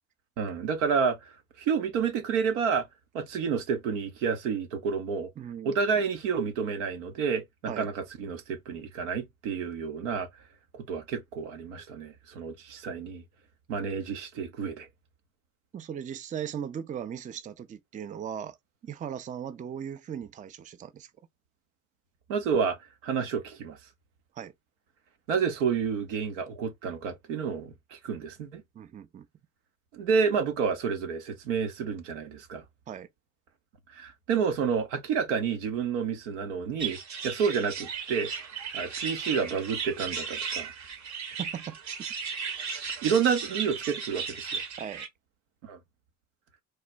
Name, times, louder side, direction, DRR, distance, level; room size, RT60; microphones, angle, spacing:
voice 1, 0.4-1.3 1.6-2.9 3.1-5.3 5.6-10.3 10.7-13.2 13.7-14.9 22.3-22.8 23.0-23.8 25.3-28.6 29.9-32.6 33.9-37.0 37.2-38.3 38.7-40.7 43.0-44.6 45.6-45.8, right 6 dB, 80° right, 0.8 m, -29 dB
voice 2, 5.4-5.7 7.7-7.9 15.7-18.6 18.8-21.1 24.3-24.5 28.7-29.3 32.9-33.1 41.4-41.8 44.8-45.1, right 8 dB, 20° right, 0.4 m, -38 dB
sound 1, 36.8-45.1, right 6 dB, 50° right, 0.9 m, -36 dB
3.2 x 2.1 x 2.4 m
hypercardioid pair, 55°, 36 cm